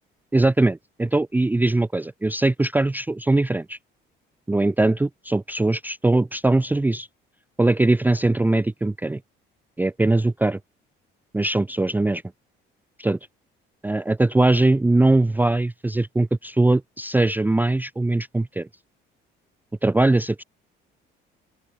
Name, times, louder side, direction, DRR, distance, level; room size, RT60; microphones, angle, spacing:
voice 1, 0.3-3.8 4.5-7.1 7.6-9.2 9.8-10.6 11.3-12.2 13.0-13.2 13.8-18.7 19.8-20.4, right 2 dB, 10° right, 0.6 m, -21 dB
open air
cardioid pair, 100°, 21 cm